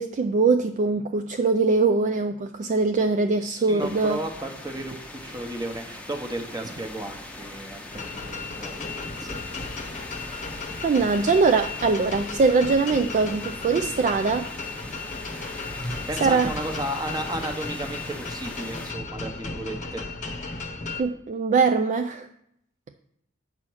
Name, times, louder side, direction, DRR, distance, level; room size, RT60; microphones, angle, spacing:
voice 1, 0.0-4.2 10.8-14.5 16.2-16.5 21.0-22.3, right 4 dB, 35° right, 7 dB, 0.3 m, -22 dB
voice 2, 3.5-10.1 15.8-20.1, right 1 dB, 20° right, 5 dB, 1.0 m, -34 dB
sound 1, 3.8-18.9, left 1 dB, 5° left, 0.8 m, -41 dB
sound 2, 7.9-21.0, left 3 dB, 35° left, 0.8 m, -35 dB
8.3 x 4.4 x 6.2 m, 0.76 s
head